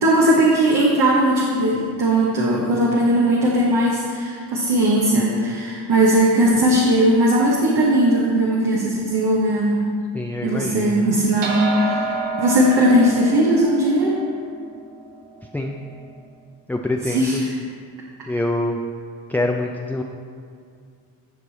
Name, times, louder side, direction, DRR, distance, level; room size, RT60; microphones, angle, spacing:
voice 1, 0.0-9.8 10.4-12.0 12.4-14.2 17.0-17.4, right 1 dB, 60° right, -3 dB, 1.3 m, -18 dB
voice 2, 10.1-11.2 15.5-15.8 16.7-17.4 18.3-18.8 19.3-20.0, left 1 dB, 5° left, 2 dB, 0.5 m, -25 dB
sound 1, 11.4-16.1, right 3 dB, 80° right, 1.1 m, -29 dB
11.0 x 4.7 x 4.1 m, 2.2 s
hypercardioid pair, 50°, 44 cm